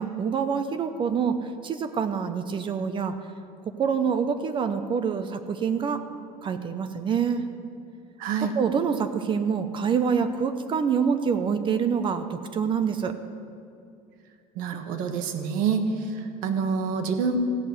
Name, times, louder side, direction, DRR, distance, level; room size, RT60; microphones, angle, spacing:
voice 1, 0.0-3.1 3.8-6.0 6.4-7.4 8.5-13.1, right 6 dB, 35° right, 9 dB, 0.7 m, -26 dB
voice 2, 8.2-8.5 14.5-17.4, right 5 dB, 75° right, 7 dB, 1.4 m, -27 dB
15.0 x 6.2 x 9.2 m, 2.4 s
cardioid pair, 125°, 14 cm